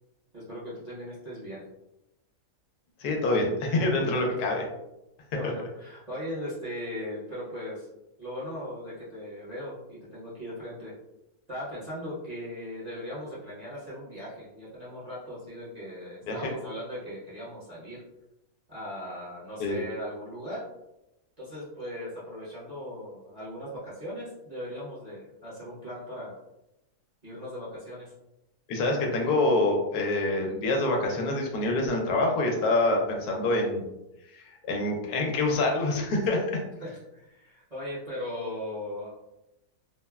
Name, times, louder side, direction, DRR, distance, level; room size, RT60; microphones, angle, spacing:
voice 1, 0.3-1.6 4.1-4.2 5.3-7.9 8.2-10.9 11.5-18.0 18.7-20.6 21.4-26.4 27.2-28.1 36.8-39.1, equal, 35° right, -10 dB, 0.8 m, -38 dB
voice 2, 3.0-4.6 5.4-5.5 16.3-16.5 19.6-19.8 28.7-33.9 34.3-36.6, left 2 dB, 80° left, 1 dB, 1.2 m, -26 dB
3.4 x 2.1 x 2.2 m, 0.91 s
omnidirectional pair, 1.7 m